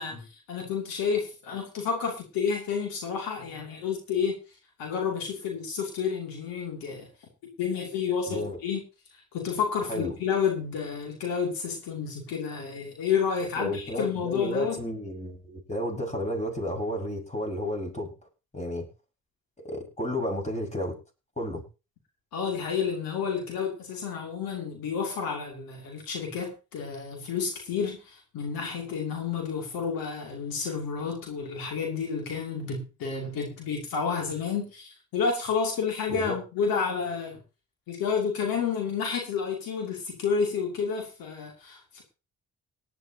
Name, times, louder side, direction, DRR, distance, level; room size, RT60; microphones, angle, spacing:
voice 1, 0.0-4.4 4.8-7.1 7.6-8.8 9.3-14.8 22.3-37.4 37.9-42.0, left 6 dB, 85° left, 1 dB, 2.8 m, -30 dB
voice 2, 8.3-8.6 9.9-10.1 13.6-18.1 18.5-18.9 19.6-21.0 21.4-21.6 36.1-36.4, left 1 dB, 20° left, 1 dB, 5.8 m, -32 dB
18.5 x 11.0 x 2.9 m, 0.30 s
supercardioid pair, 45°, 34 cm